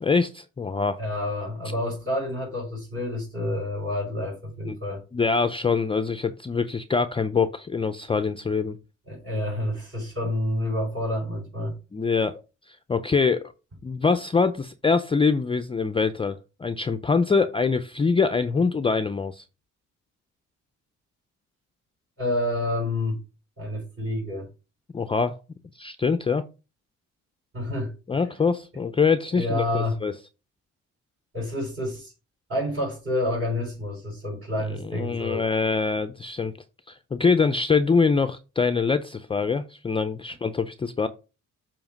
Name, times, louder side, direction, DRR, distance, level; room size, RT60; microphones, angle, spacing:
voice 1, 0.0-1.0 4.7-4.8 5.1-8.8 11.9-12.4 12.7-13.5 13.8-19.4 24.9-25.4 25.8-26.4 28.1-30.1 34.8-36.5 36.9-41.1, left 5 dB, 20° left, 0.4 m, -24 dB
voice 2, 1.0-5.0 9.1-11.8 22.2-23.2 23.6-24.5 27.5-28.2 29.3-30.0 31.3-32.1 32.5-35.4, left 1 dB, 50° right, 4.2 m, -29 dB
7.1 x 2.9 x 5.1 m
cardioid pair, 90°, 30 cm